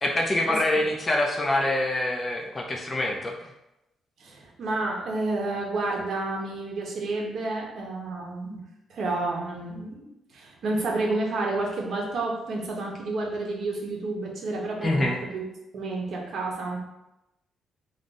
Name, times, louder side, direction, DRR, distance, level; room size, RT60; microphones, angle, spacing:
voice 1, 0.0-3.3 14.8-15.2, left 1 dB, 20° left, 0 dB, 0.4 m, -25 dB
voice 2, 4.2-8.6 8.9-15.4 15.7-16.8, right 2 dB, 50° right, -1 dB, 0.8 m, -30 dB
3.7 x 2.5 x 3.9 m, 0.92 s
cardioid pair, 170°, 0 cm